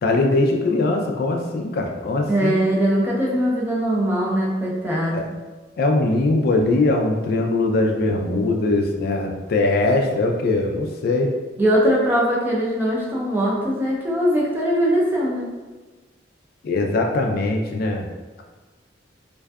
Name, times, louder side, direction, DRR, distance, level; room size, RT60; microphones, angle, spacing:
voice 1, 0.0-2.6 5.1-5.2 5.8-11.3 16.6-18.0, left 2 dB, 55° left, 2 dB, 0.3 m, -21 dB
voice 2, 2.3-5.3 11.6-15.5, equal, 10° right, -5 dB, 0.5 m, -21 dB
2.6 x 2.2 x 2.2 m, 1.3 s
head